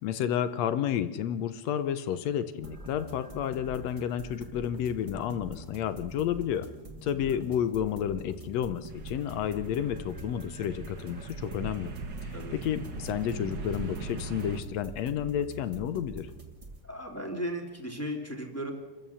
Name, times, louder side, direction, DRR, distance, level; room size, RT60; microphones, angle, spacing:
voice 1, 0.0-6.7 7.0-11.9 12.2-16.3, left 9 dB, 70° left, 12 dB, 1.7 m, -31 dB
sound 1, 2.6-16.8, right 2 dB, 15° right, 1.6 m, -46 dB
voice 2, 7.1-7.5 12.3-12.5 16.8-18.7, equal, 5° left, 1 dB, 2.0 m, -36 dB
sound 2, 8.9-14.6, right 3 dB, 50° right, 1.4 m, -40 dB
28.5 x 14.5 x 7.0 m, 1.2 s
omnidirectional pair, 3.7 m